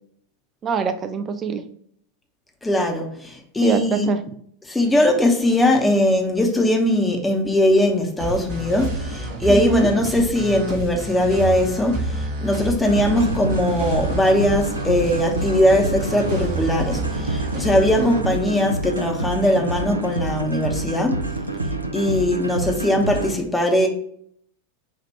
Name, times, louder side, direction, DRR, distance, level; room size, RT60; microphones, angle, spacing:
voice 1, 0.6-1.6 3.6-4.2 9.5-9.9 18.0-18.2, right 5 dB, 25° right, 9 dB, 0.4 m, -23 dB
voice 2, 2.6-4.1 4.6-21.3 21.9-23.9, left 1 dB, 10° left, 2 dB, 0.8 m, -20 dB
sound 1, 8.2-18.2, right 2 dB, 50° right, 1.0 m, -29 dB
sound 2, 12.9-23.4, right 2 dB, 85° right, 0.4 m, -27 dB
4.6 x 2.4 x 4.3 m, 0.66 s
figure-of-eight pair, 90°, 0 cm